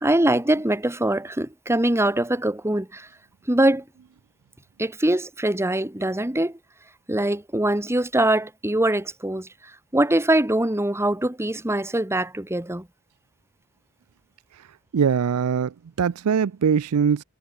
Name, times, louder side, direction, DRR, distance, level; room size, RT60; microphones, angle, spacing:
voice 1, 0.0-3.1 3.5-3.8 4.8-6.6 7.1-9.5 9.9-12.9, right 1 dB, 10° right, 1.6 m, -23 dB
voice 2, 14.9-17.2, right 7 dB, 85° right, 0.4 m, -22 dB
head